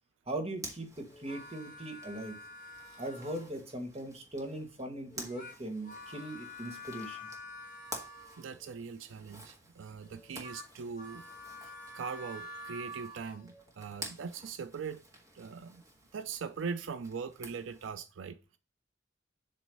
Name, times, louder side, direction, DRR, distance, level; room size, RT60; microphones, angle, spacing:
voice 1, 0.3-2.4 3.0-7.3, right 1 dB, 35° right, 1.5 m, -40 dB
Zipper (clothing), 0.5-17.9, right 1 dB, 20° right, 1.6 m, -51 dB
sound 1, 1.1-3.7 5.1-8.8 10.0-13.7, left 1 dB, 45° left, 1.8 m, -48 dB
voice 2, 8.4-11.3 11.6-15.0 15.3-15.8 16.1-18.6, right 5 dB, 85° right, 0.4 m, -41 dB
7.6 x 3.1 x 5.3 m
head